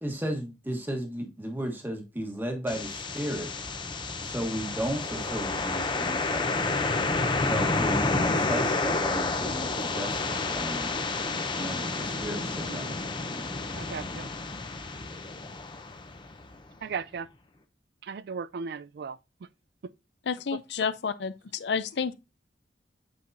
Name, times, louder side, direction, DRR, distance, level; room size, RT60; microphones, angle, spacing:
voice 1, 0.0-3.5 4.2-6.5 7.5-10.9 11.6-12.9 13.3-13.4, equal, 10° right, 1.2 m, -34 dB
sound 1, 2.7-16.5, left 3 dB, 25° left, 0.7 m, -30 dB
voice 2, 12.6-12.9 13.8-14.3 16.8-17.3 18.0-19.2, right 5 dB, 60° right, 0.3 m, -36 dB
voice 3, 20.3-22.1, left 6 dB, 65° left, 0.5 m, -30 dB
8.1 x 4.7 x 2.6 m
head